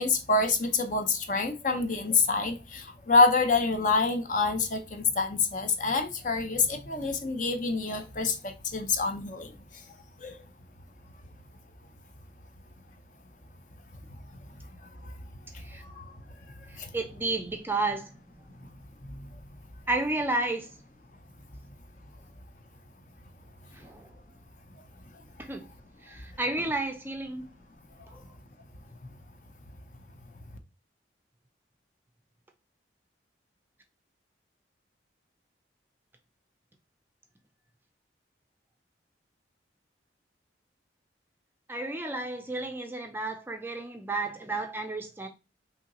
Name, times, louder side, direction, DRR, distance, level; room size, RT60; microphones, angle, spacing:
voice 1, 0.0-9.5 10.2-10.3 16.0-16.1, left 3 dB, 45° left, 0.7 m, -26 dB
voice 2, 16.7-18.2 19.9-20.7 23.7-24.1 25.4-25.6 26.0-27.5 41.7-45.3, right 2 dB, 10° right, 0.5 m, -32 dB
5.5 x 2.8 x 2.9 m
head